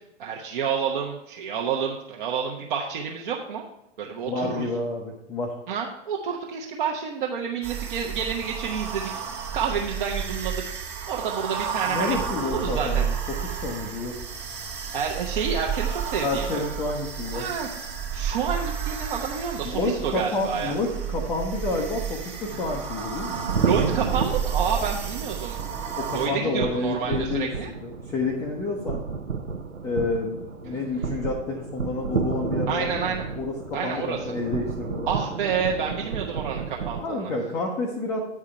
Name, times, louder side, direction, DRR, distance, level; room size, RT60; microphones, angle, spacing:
voice 1, 0.2-3.6 4.0-4.7 5.7-9.1 9.5-10.5 11.1-12.2 12.4-13.0 14.9-16.6 17.3-17.7 18.1-20.7 22.5-22.6 23.6-25.6 26.1-27.7 32.7-33.3 33.7-34.2 35.1-37.3, right 6 dB, 40° right, -1 dB, 0.9 m, -29 dB
voice 2, 4.2-5.5 11.9-14.2 16.2-17.5 19.6-23.4 25.9-27.5 27.8-29.0 29.8-35.1 37.0-38.2, left 3 dB, 10° left, -2 dB, 0.4 m, -29 dB
sound 1, 7.6-26.3, right 7 dB, 20° right, 1.4 m, -31 dB
sound 2, 23.3-37.0, right 5 dB, 80° right, 0.8 m, -32 dB
8.8 x 4.8 x 5.6 m, 0.87 s
figure-of-eight pair, 110°, 36 cm